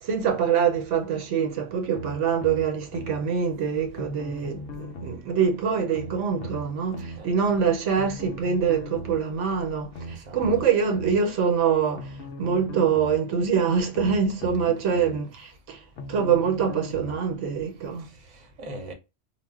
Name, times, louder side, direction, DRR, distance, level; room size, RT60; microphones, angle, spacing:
voice 1, 0.0-12.1 12.4-15.8 16.1-18.1, right 6 dB, 75° right, 0.9 m, -25 dB
sound 1, 2.0-3.2 4.0-5.2 5.9-7.2 8.0-9.2 9.9-11.2 12.0-13.2 13.9-15.2 16.0-17.2 17.9-18.0, equal, 70° left, 0.8 m, -38 dB
voice 2, 10.1-10.7 14.7-14.8 18.2-18.9, right 1 dB, 40° right, 0.7 m, -41 dB
2.4 x 2.1 x 3.4 m
omnidirectional pair, 1.3 m